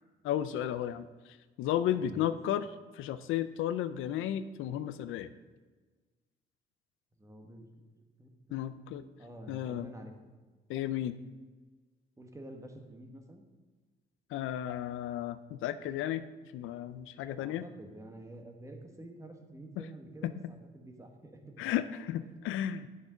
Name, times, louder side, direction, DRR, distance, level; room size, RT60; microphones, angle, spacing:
voice 1, 0.2-1.1 1.6-2.7 2.9-5.3 8.5-9.0 9.5-9.9 10.7-11.2 14.3-16.2 16.5-17.7 19.8-19.9 20.2-20.3 21.6-22.9, left 11 dB, 90° left, 13 dB, 0.5 m, -33 dB
voice 2, 1.9-2.2 7.2-7.7 7.9-8.6 9.2-10.3 12.2-13.4 17.4-21.7 22.2-22.4, right 1 dB, 15° right, 3 dB, 1.5 m, -49 dB
8.7 x 6.8 x 5.2 m, 1.3 s
cardioid pair, 90°, 20 cm